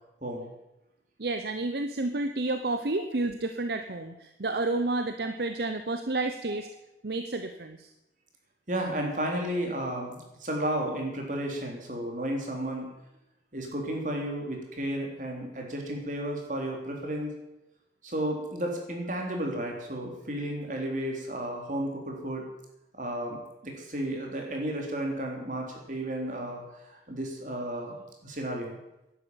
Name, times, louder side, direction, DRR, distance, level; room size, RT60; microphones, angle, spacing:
voice 1, 1.2-6.7 7.0-7.9, right 2 dB, 65° right, 7 dB, 0.9 m, -30 dB
voice 2, 8.7-12.9 13.5-17.3 18.0-22.4 22.9-28.0 28.2-28.8, right 1 dB, 45° right, 1 dB, 3.5 m, -33 dB
11.5 x 10.0 x 9.0 m, 0.91 s
head